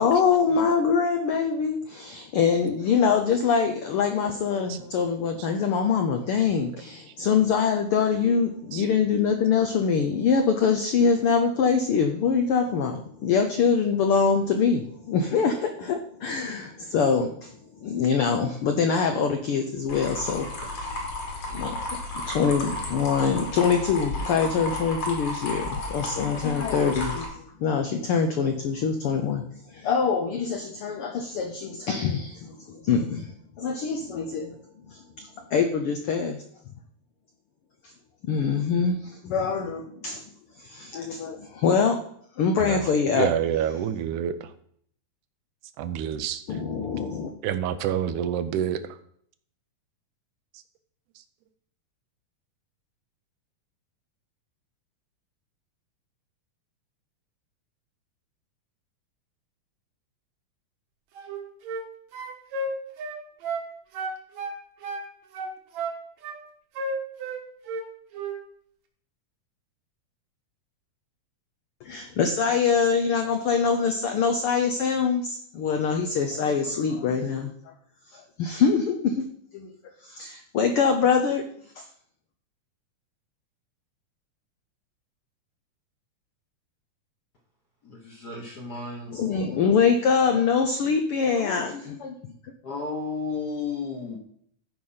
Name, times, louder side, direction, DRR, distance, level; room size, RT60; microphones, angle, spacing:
voice 1, 0.0-21.0 21.5-34.5 34.9-36.4 37.8-37.9 38.2-40.2 40.6-42.0 42.4-43.3 46.5-47.3 71.8-77.7 78.1-79.2 79.5-79.7 80.0-81.5 81.8-81.9 89.1-92.1 92.4-92.5, left 6 dB, 80° left, 5 dB, 1.2 m, -24 dB
sound 1, 19.9-27.3, left 2 dB, 65° left, 3.5 m, -33 dB
voice 2, 43.1-44.3 45.8-46.4 47.4-48.8, right 9 dB, 85° right, 11 dB, 2.2 m, -27 dB
sound 2, 61.2-61.9 62.1-63.7 63.9-65.1 65.3-66.4 66.8-67.9 68.1-68.4, right 2 dB, 70° right, 2.4 m, -32 dB
voice 3, 87.8-89.2 92.6-94.2, left 4 dB, 50° left, 0 dB, 1.3 m, -33 dB
13.0 x 5.0 x 5.5 m, 0.64 s
omnidirectional pair, 3.5 m